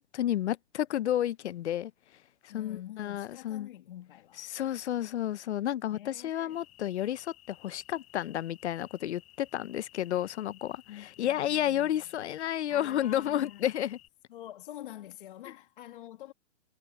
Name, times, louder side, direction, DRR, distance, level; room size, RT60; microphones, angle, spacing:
voice 1, 0.0-1.9 2.4-3.7 4.4-14.0, left 11 dB, 65° left, 0.7 m, -31 dB
voice 2, 2.5-4.5 5.9-6.6 10.9-12.0 12.7-13.7 14.3-16.3, left 13 dB, 45° left, 1.8 m, -46 dB
sound 1, 6.5-14.1, left 16 dB, 20° left, 5.1 m, -58 dB
hypercardioid pair, 170°, 37 cm